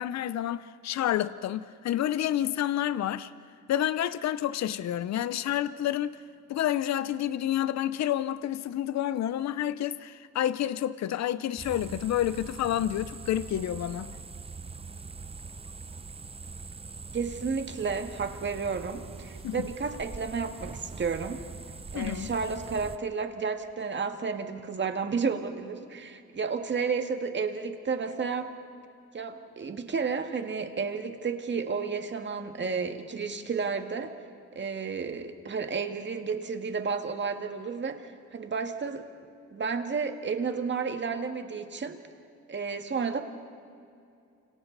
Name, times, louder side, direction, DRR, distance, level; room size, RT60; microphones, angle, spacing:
voice 1, 0.0-3.3 3.7-6.2 6.5-14.1 19.4-19.7 21.9-22.3, left 11 dB, 65° left, 0.7 m, -29 dB
sound 1, 11.6-23.0, right 4 dB, 20° right, 0.7 m, -43 dB
voice 2, 17.1-21.4 21.9-28.5 29.1-34.1 34.6-39.1 39.5-42.0 42.5-43.2, right 5 dB, 35° right, 2.0 m, -32 dB
29.0 x 26.5 x 4.1 m
cardioid pair, 90°, 30 cm